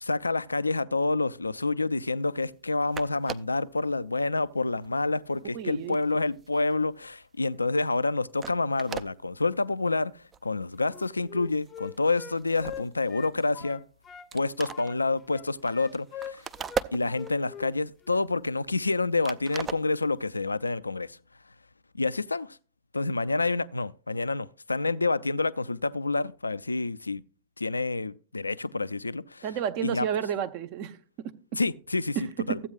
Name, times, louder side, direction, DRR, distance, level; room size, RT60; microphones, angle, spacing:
voice 1, 0.0-10.1 10.4-13.8 14.3-16.4 16.9-21.2 21.9-22.6 22.9-27.2 27.6-29.4 29.8-30.1 31.6-32.2 32.5-32.6, left 3 dB, 80° left, 0.4 m, -28 dB
sound 1, 2.6-2.7 2.9-3.6 4.3-4.5 4.8-7.2 7.5-7.7 8.1-8.2 8.4-9.1 9.8-9.9 10.2-10.4 10.8-11.2 11.5-13.7 14.0-14.1 14.3-17.5 17.9-19.0 19.2-20.4, right 6 dB, 25° right, 0.5 m, -39 dB
voice 2, 5.5-6.0 29.4-31.0 32.2-32.6, right 9 dB, 45° right, 0.9 m, -31 dB
Wind instrument woodwind instrument, 10.9-14.3 14.7-17.8 18.0-18.3, left 9 dB, 25° left, 0.7 m, -43 dB
14.5 x 8.5 x 2.4 m
figure-of-eight pair, 90°, 0 cm